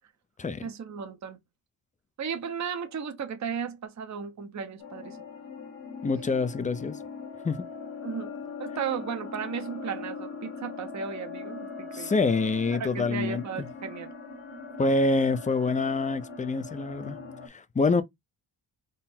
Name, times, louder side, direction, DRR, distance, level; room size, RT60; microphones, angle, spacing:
voice 1, 0.6-1.4 2.2-5.2 8.0-8.3 8.6-12.1 12.7-14.1 17.9-18.0, right 7 dB, 35° right, 0.9 m, -35 dB
sound 1, 4.8-17.5, left 4 dB, 70° left, 1.6 m, -41 dB
voice 2, 6.0-7.0 7.4-7.6 11.9-13.7 14.8-17.2 17.5-18.0, left 3 dB, 15° left, 0.5 m, -26 dB
3.8 x 2.0 x 4.2 m
cardioid pair, 100°, 48 cm